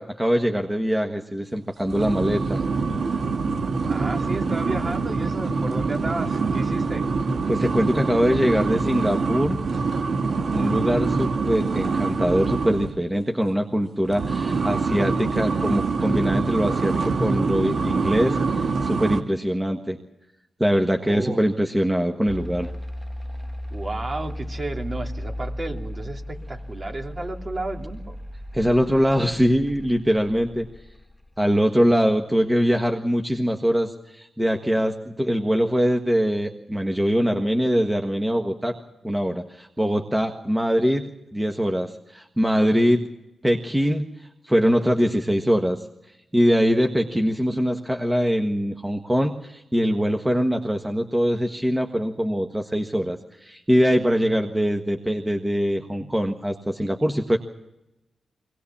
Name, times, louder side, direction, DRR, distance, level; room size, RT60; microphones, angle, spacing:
voice 1, 0.0-2.6 7.5-9.6 10.5-20.0 20.6-22.7 28.5-30.7 31.4-38.7 39.0-43.0 43.4-44.1 44.4-45.8 46.3-57.4, equal, 10° right, 3 dB, 1.6 m, -23 dB
sound 1, 1.8-13.0 14.0-19.2, right 4 dB, 65° right, 1.6 m, -25 dB
voice 2, 3.9-7.1 21.0-21.4 23.7-28.2, right 2 dB, 40° right, 2 dB, 2.9 m, -32 dB
sound 2, 22.3-31.4, left 1 dB, 10° left, 1.2 m, -35 dB
22.5 x 19.0 x 7.3 m, 0.90 s
cardioid pair, 65°, 0 cm